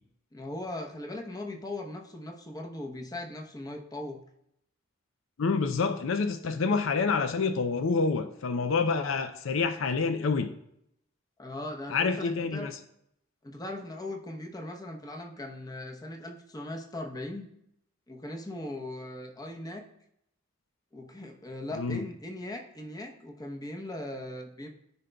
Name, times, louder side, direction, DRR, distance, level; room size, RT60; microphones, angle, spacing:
voice 1, 0.3-4.2 11.4-12.7 13.4-17.5 18.1-19.9 20.9-24.7, left 1 dB, 20° left, 2 dB, 0.8 m, -39 dB
voice 2, 5.4-10.5 11.9-12.7 21.8-22.0, left 4 dB, 70° left, 8 dB, 0.5 m, -27 dB
13.5 x 5.1 x 2.3 m, 0.76 s
head